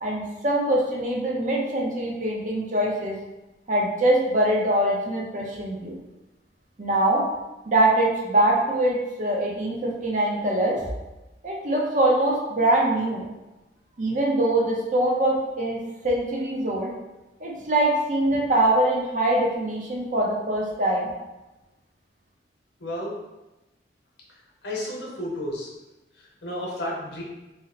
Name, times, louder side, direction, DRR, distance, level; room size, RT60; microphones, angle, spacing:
voice 1, 0.0-3.2 3.7-6.0 6.8-7.2 7.7-10.8 11.4-13.3 14.0-16.9 17.4-21.1, right 1 dB, 45° right, -2 dB, 0.6 m, -23 dB
voice 2, 22.8-23.1 24.6-25.7 26.2-27.2, left 1 dB, 65° left, -3 dB, 0.8 m, -32 dB
2.7 x 2.0 x 3.9 m, 1.0 s
head